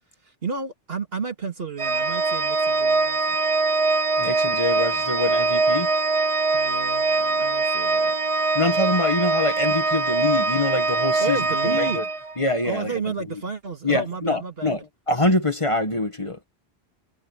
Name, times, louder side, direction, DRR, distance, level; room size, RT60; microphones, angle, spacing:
voice 1, 0.2-3.4 6.5-8.2 11.2-12.0 12.6-14.8, right 4 dB, 65° right, 2.5 m, -32 dB
Organ, 1.8-12.6, right 3 dB, 35° right, 0.7 m, -23 dB
voice 2, 4.2-5.9 8.5-12.0 12.4-13.4 13.8-16.4, left 2 dB, 30° left, 1.8 m, -25 dB
omnidirectional pair, 1.1 m